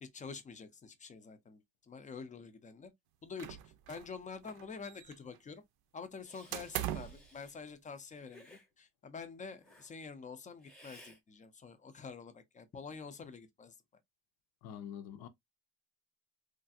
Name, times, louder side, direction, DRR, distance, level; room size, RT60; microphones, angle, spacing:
voice 1, 0.0-2.9 3.2-5.6 5.9-13.7, left 5 dB, 20° left, 0.4 m, -47 dB
sound 1, 3.4-4.2 4.4-5.4 6.5-7.3, right 12 dB, 80° right, 0.5 m, -40 dB
Hiss, 6.2-7.6 8.3-8.7 9.6-9.9 10.6-11.2, equal, ahead, 0.7 m, -58 dB
voice 2, 14.6-15.3, left 9 dB, 75° left, 0.6 m, -45 dB
3.2 x 2.4 x 2.5 m
cardioid pair, 170°, 37 cm